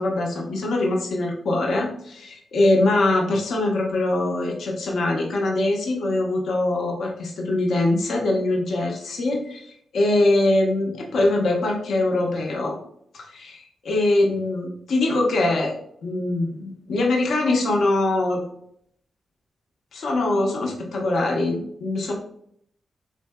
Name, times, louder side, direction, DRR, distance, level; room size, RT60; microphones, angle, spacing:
voice 1, 0.0-12.8 13.1-15.8 16.0-18.4 19.9-22.1, left 2 dB, 75° left, 0 dB, 0.6 m, -23 dB
3.6 x 2.6 x 2.2 m, 0.70 s
supercardioid pair, 40°, 0 cm